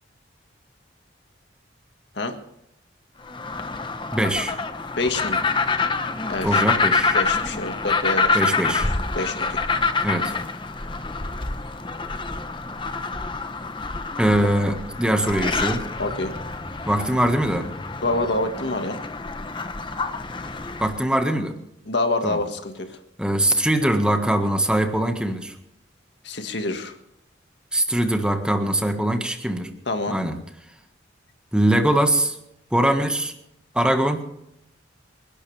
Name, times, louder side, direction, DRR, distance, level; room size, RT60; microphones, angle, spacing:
sound 1, 3.2-21.0, left 4 dB, 25° left, 0.9 m, -26 dB
voice 1, 4.1-4.5 6.4-7.2 8.3-8.9 10.0-10.3 14.2-15.8 16.9-17.7 20.8-21.5 22.2-22.4 23.2-25.5 27.7-29.7 30.1-30.4 31.5-32.4 32.7-33.3 33.7-34.2, right 1 dB, 5° right, 5 dB, 1.6 m, -22 dB
voice 2, 5.0-5.4 6.3-6.6 7.1-8.6 9.2-9.6 16.0-16.3 18.0-19.0 21.9-22.9 26.2-27.0 29.9-30.2, left 2 dB, 65° left, 6 dB, 1.8 m, -26 dB
28.5 x 12.0 x 3.4 m, 0.80 s
head